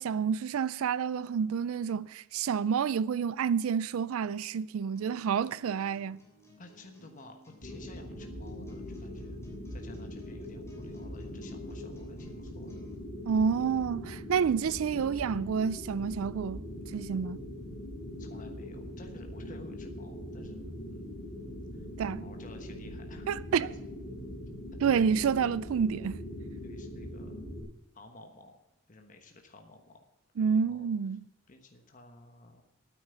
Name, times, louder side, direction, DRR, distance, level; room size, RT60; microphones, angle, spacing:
voice 1, 0.0-6.2 13.2-16.7 16.9-17.4 22.0-22.2 23.3-23.7 24.8-26.2 30.4-31.2, right 6 dB, 75° right, 0.4 m, -29 dB
sound 1, 5.0-12.9, right 1 dB, 15° left, 3.1 m, -58 dB
voice 2, 6.6-9.4 9.7-12.7 18.2-21.1 21.7-23.8 24.7-25.1 26.6-27.3 27.9-28.6 28.9-30.0 30.4-30.9 31.5-32.6, left 2 dB, 35° left, 1.2 m, -53 dB
sound 2, 7.6-27.6, left 1 dB, 60° left, 4.2 m, -42 dB
9.4 x 8.9 x 8.0 m
head